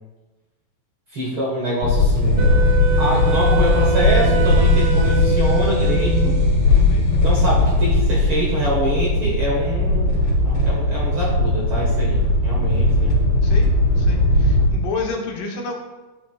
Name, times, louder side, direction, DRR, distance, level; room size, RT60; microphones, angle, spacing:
voice 1, 1.1-2.7 3.0-6.4 7.2-10.2 10.4-13.1, right 1 dB, 55° right, -4 dB, 1.6 m, -25 dB
sound 1, 1.8-14.7, left 2 dB, 40° left, 2.5 m, -18 dB
sound 2, 2.1-8.8, equal, 5° left, 2.2 m, -29 dB
Wind instrument woodwind instrument, 2.4-6.7, right 5 dB, 80° right, 2.1 m, -26 dB
voice 2, 14.0-15.7, left 4 dB, 75° left, 1 dB, 2.5 m, -29 dB
12.5 x 6.5 x 2.3 m, 1.2 s
omnidirectional pair, 4.0 m